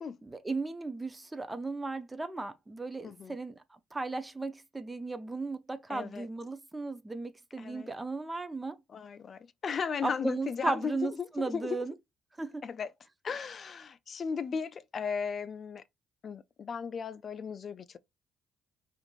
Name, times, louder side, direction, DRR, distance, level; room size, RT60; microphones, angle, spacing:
voice 1, 0.2-3.5 3.9-8.8 10.0-11.9 12.4-12.6, right 3 dB, 20° right, 0.5 m, -36 dB
voice 2, 3.0-3.4 5.9-6.3 7.6-7.9 8.9-11.8 12.6-12.9 13.2-15.8 16.2-18.0, left 6 dB, 50° left, 0.3 m, -36 dB
2.5 x 2.5 x 3.0 m
supercardioid pair, 75°, 0 cm